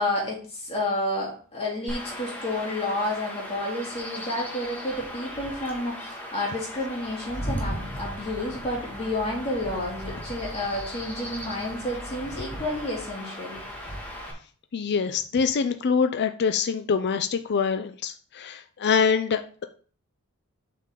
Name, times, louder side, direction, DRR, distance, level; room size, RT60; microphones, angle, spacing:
voice 1, 0.0-13.6, left 1 dB, 30° left, -4 dB, 3.3 m, -30 dB
Chirp tweet / Wind / Stream, 1.9-14.3, equal, 10° left, 1.9 m, -37 dB
voice 2, 14.7-19.6, left 6 dB, 50° left, 8 dB, 0.4 m, -25 dB
7.4 x 5.5 x 3.7 m, 0.42 s
head